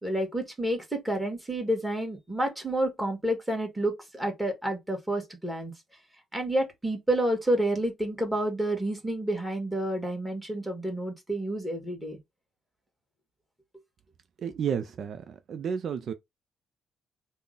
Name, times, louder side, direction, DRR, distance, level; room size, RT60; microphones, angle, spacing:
voice 1, 0.0-5.7 6.3-12.2, right 1 dB, 10° right, 1.5 m, -29 dB
voice 2, 14.4-16.1, right 7 dB, 60° right, 0.4 m, -32 dB
3.6 x 2.1 x 3.8 m
cardioid pair, 90°, 0 cm